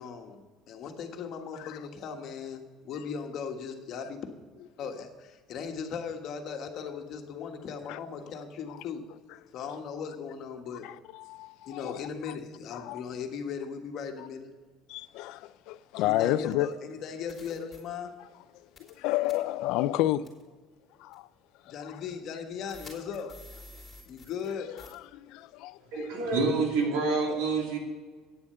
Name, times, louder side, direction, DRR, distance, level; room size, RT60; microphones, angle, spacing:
voice 1, 0.0-4.2 4.8-9.0 9.5-10.9 11.7-14.5 16.0-18.1 21.6-23.4 24.1-24.7 26.9-27.4, left 6 dB, 55° left, 1.4 m, -38 dB
voice 2, 6.7-7.1 7.3-8.0 8.7-8.8 9.7-9.8 10.8-12.0 12.3-12.4 12.7-13.0 14.9-16.7 17.4-17.5 18.9-20.2 21.0-21.3 21.7-22.0 24.6-26.4, left 15 dB, 75° left, 0.4 m, -32 dB
sound 1, 16.6-16.7 17.3-17.8 18.8-19.0 19.2-19.3 20.2-20.4 21.1-21.2 22.7-24.5 24.8-24.9, left 2 dB, 20° left, 3.3 m, -49 dB
voice 3, 25.9-27.8, right 4 dB, 85° right, 2.8 m, -27 dB
9.4 x 7.1 x 6.7 m
cardioid pair, 110°, 0 cm